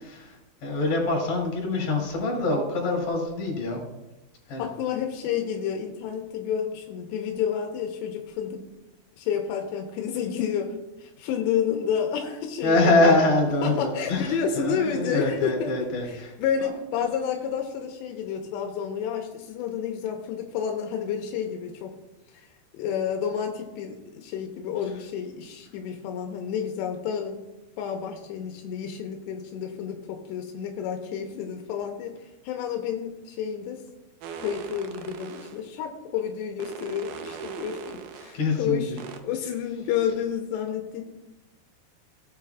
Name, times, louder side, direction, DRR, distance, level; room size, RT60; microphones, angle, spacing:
voice 1, 0.2-3.8 4.5-4.7 12.6-16.3 16.6-16.7 38.3-39.0, left 2 dB, 50° left, -2 dB, 3.9 m, -24 dB
voice 2, 4.6-8.7 9.2-13.2 13.6-21.9 22.3-22.5 22.7-27.4 27.8-33.8 34.4-38.9 39.2-41.0, left 8 dB, 85° left, 3 dB, 3.0 m, -30 dB
sound 1, 34.2-35.6 36.6-38.4 39.0-39.2, right 6 dB, 80° right, 1.9 m, -39 dB
16.5 x 7.9 x 2.3 m, 1.0 s
omnidirectional pair, 4.8 m